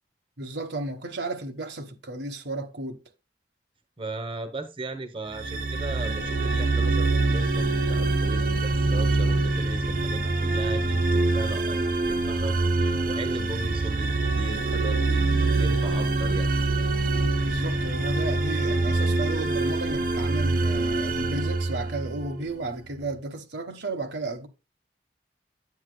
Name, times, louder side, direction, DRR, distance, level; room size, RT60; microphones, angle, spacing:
voice 1, 0.4-3.0 12.7-13.1 17.4-24.5, right 2 dB, 75° right, 1.3 m, -33 dB
voice 2, 4.0-7.6 7.9-11.8 12.1-16.5, right 2 dB, 30° right, 1.1 m, -37 dB
sound 1, 5.3-22.4, right 2 dB, 50° right, 0.9 m, -25 dB
9.7 x 8.7 x 2.3 m
head